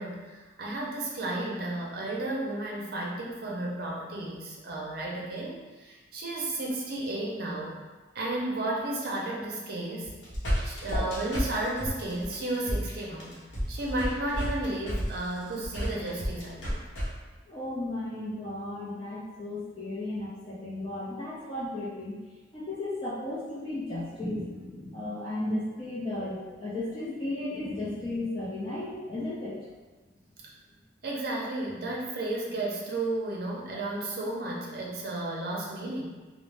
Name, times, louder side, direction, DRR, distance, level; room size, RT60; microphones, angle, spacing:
voice 1, 0.0-7.8 8.1-10.1 10.6-13.4 13.7-16.8 31.0-36.1, right 2 dB, 50° right, -3 dB, 0.5 m, -33 dB
sound 1, 10.0-17.1, equal, 75° left, 0.8 m, -32 dB
voice 2, 17.5-22.1 22.5-29.6, left 1 dB, 25° left, -9 dB, 0.4 m, -34 dB
2.5 x 2.0 x 3.2 m, 1.3 s
head